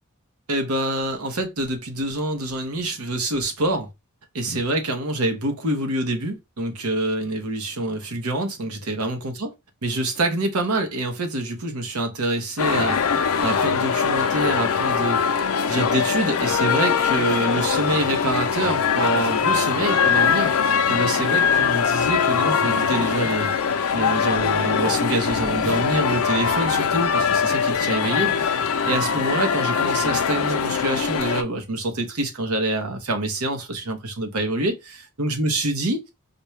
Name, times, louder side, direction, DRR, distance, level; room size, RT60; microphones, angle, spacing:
voice 1, 0.5-3.9 4.3-9.5 9.8-15.2 15.7-36.1, right 1 dB, 80° right, 1.0 m, -26 dB
sound 1, 12.6-31.4, left 6 dB, 70° left, 0.5 m, -22 dB
4.2 x 2.2 x 3.1 m
head